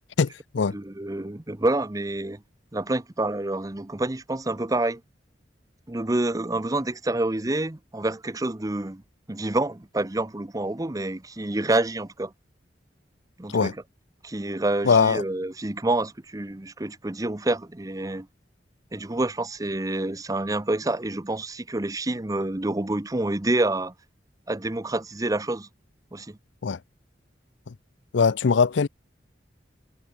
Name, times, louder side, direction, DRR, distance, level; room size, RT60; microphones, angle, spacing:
voice 1, 0.2-0.8 13.5-13.7 14.8-15.2 26.6-26.8 27.7-27.8 28.1-28.9, left 5 dB, 80° left, 0.5 m, -21 dB
voice 2, 0.7-2.4 2.7-5.0 5.9-9.0 9.3-12.3 13.4-13.8 14.2-18.3 18.9-23.9 24.5-25.7 26.1-26.4, right 2 dB, 20° right, 0.8 m, -27 dB
head